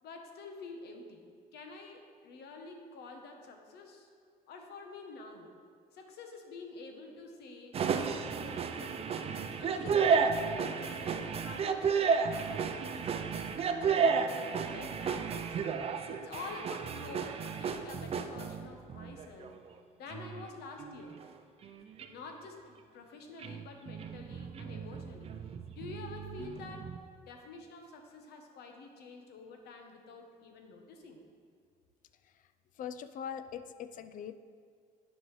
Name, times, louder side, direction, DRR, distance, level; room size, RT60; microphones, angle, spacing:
voice 1, 0.0-1.2 1.5-4.1 4.5-5.5 5.9-9.1 9.6-15.6 16.1-19.5 20.0-21.2 22.1-25.3 25.7-26.9 27.2-31.2, left 3 dB, 75° left, 4 dB, 1.0 m, -48 dB
sound 1, 7.7-19.7 20.1-20.5 20.8-21.3 21.6-22.1 23.4-27.0, right 6 dB, 35° right, 0.4 m, -33 dB
voice 2, 32.8-34.3, left 8 dB, 50° left, 12 dB, 0.4 m, -41 dB
10.0 x 5.4 x 3.1 m, 2.1 s
cardioid pair, 110°, 17 cm